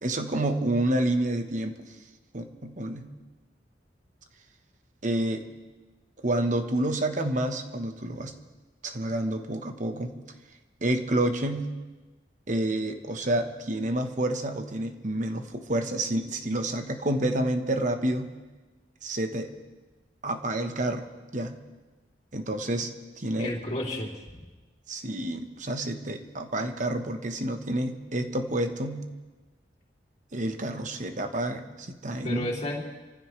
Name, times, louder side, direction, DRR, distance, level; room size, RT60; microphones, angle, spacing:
voice 1, 0.0-1.8 2.3-3.1 5.0-5.4 6.2-8.3 8.8-10.1 10.8-11.7 12.5-18.3 19.0-19.5 20.2-21.0 21.3-21.5 22.3-22.9 23.2-23.6 24.9-29.0 30.3-32.5, right 1 dB, 45° right, 6 dB, 1.2 m, -29 dB
voice 2, 23.4-24.4 32.2-32.8, left 1 dB, 40° left, -3 dB, 3.1 m, -32 dB
26.5 x 15.0 x 3.3 m, 1.2 s
head